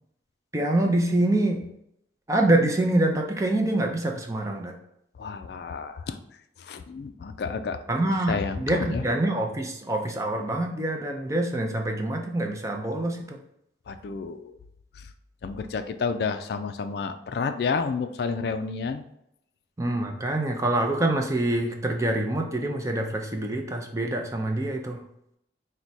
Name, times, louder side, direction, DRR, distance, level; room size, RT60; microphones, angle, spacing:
voice 1, 0.5-1.7 2.3-4.7 7.9-13.4 19.8-25.0, right 1 dB, 15° right, 2 dB, 0.5 m, -25 dB
voice 2, 5.2-6.2 6.6-7.8 8.3-9.1 13.9-14.6 15.0-15.1 15.4-19.0, left 5 dB, 60° left, 8 dB, 0.3 m, -30 dB
4.6 x 2.2 x 4.0 m, 0.76 s
head